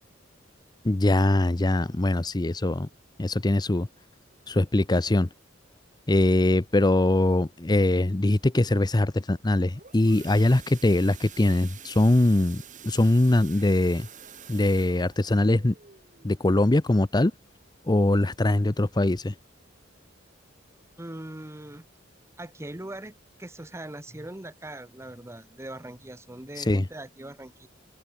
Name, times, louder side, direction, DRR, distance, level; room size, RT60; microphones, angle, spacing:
voice 1, 0.8-2.9 3.2-3.9 4.5-5.3 6.1-14.1 14.5-15.7 16.2-17.3 17.9-19.3 26.6-26.9, left 1 dB, 20° left, 0.6 m, -22 dB
sound 1, 9.6-18.1 18.6-18.8 19.1-19.2 19.7-19.8, right 8 dB, 40° right, 2.4 m, -49 dB
voice 2, 21.0-21.8 22.4-23.1 23.4-27.7, right 1 dB, 15° right, 1.0 m, -40 dB
head